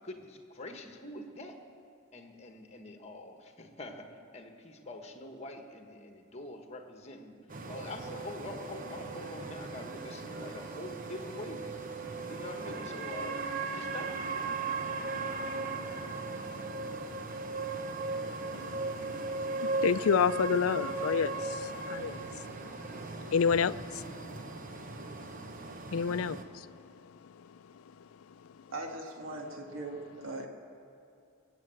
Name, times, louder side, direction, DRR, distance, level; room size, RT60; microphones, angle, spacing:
voice 1, 0.0-1.6 2.1-7.4 7.6-11.8 12.3-13.4 13.7-14.6, left 2 dB, 30° left, 1.4 m, -45 dB
sound 1, 7.5-26.4, right 3 dB, 40° right, 0.9 m, -37 dB
voice 2, 18.5-24.0 25.2-25.3 25.8-26.7 27.4-27.5, left 6 dB, 80° left, 0.4 m, -31 dB
voice 3, 28.7-30.5, right 2 dB, 70° right, 1.7 m, -40 dB
22.5 x 8.0 x 7.7 m
head